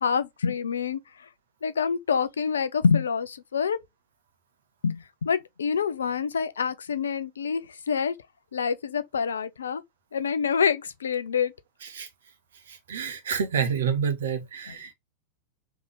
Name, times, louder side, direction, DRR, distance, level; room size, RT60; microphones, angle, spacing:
voice 1, 0.0-1.3 1.6-3.8 4.8-8.2 8.5-9.8 10.1-11.5 14.7-14.8, left 6 dB, 70° left, 0.5 m, -26 dB
voice 2, 12.7-14.9, right 7 dB, 65° right, 1.1 m, -28 dB
3.6 x 3.2 x 3.6 m
figure-of-eight pair, 90°, 0 cm